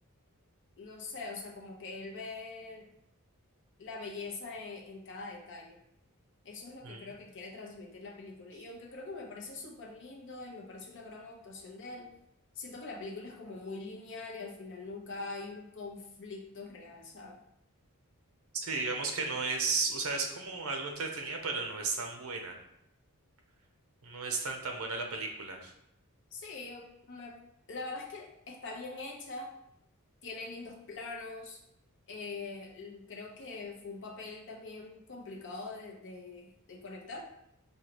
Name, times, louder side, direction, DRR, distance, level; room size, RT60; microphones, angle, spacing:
voice 1, 0.8-2.9 3.8-5.8 6.4-12.1 12.5-17.4 26.3-27.4 27.7-29.5 30.2-31.6 32.1-37.2, left 3 dB, 55° left, 0 dB, 0.7 m, -43 dB
voice 2, 18.5-22.6 24.0-25.7, right 4 dB, 70° right, 3 dB, 0.7 m, -34 dB
4.9 x 2.3 x 2.9 m, 0.78 s
head